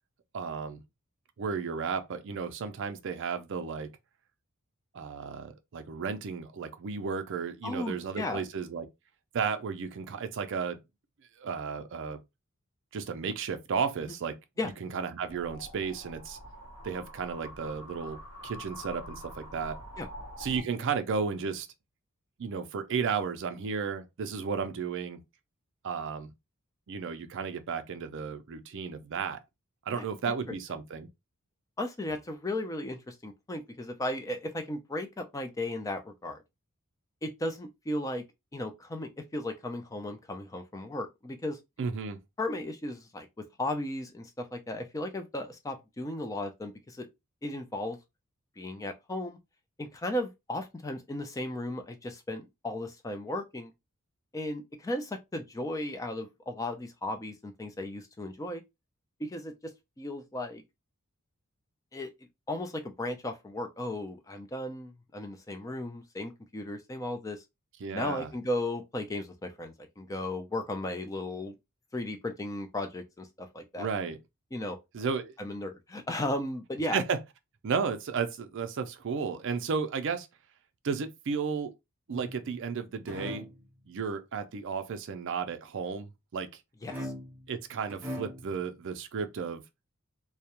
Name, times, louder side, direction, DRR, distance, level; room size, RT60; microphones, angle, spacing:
voice 1, 0.3-0.8 1.4-3.9 4.9-8.9 9.3-10.8 11.4-12.2 12.9-14.4 14.8-16.4 16.8-19.8 20.4-21.7 22.4-25.2 25.8-26.3 26.9-29.4 29.9-31.1 41.8-42.2 67.8-68.3 73.8-74.2 74.9-75.3 76.9-77.2 77.6-80.3 80.8-81.7 82.1-83.5 83.9-86.6 87.5-89.6, right 5 dB, 60° right, 0.4 m, -33 dB
voice 2, 7.6-8.4 14.6-14.7 20.0-20.1 29.9-30.4 31.8-36.4 37.2-38.2 38.5-41.6 42.4-47.1 47.4-48.0 48.6-49.4 49.8-53.7 54.3-58.6 59.2-60.6 61.9-62.1 62.5-67.4 67.9-71.5 71.9-73.9 74.5-74.8 75.4-77.0 86.8-87.1, left 1 dB, 15° left, 0.3 m, -35 dB
sound 1, 15.3-20.6, equal, 85° left, 0.9 m, -45 dB
sound 2, 82.1-82.7 83.1-83.6 86.9-87.5 87.9-88.6, equal, 10° right, 0.8 m, -40 dB
2.3 x 2.1 x 2.8 m
head